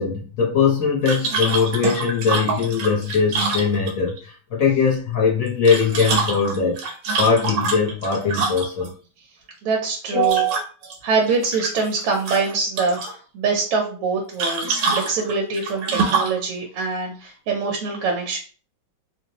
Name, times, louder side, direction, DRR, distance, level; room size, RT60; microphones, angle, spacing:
voice 1, 0.0-6.8 7.2-8.9 10.1-10.5, left 4 dB, 50° left, -3 dB, 1.2 m, -20 dB
sound 1, 1.1-4.2 5.5-8.9 10.2-11.0 11.3-12.0 12.3-13.1 14.4-16.4, right 4 dB, 70° right, 1.5 m, -25 dB
voice 2, 9.6-10.4 11.0-18.4, right 4 dB, 90° right, 0 dB, 1.6 m, -24 dB
4.1 x 2.4 x 2.9 m, 0.39 s
omnidirectional pair, 2.4 m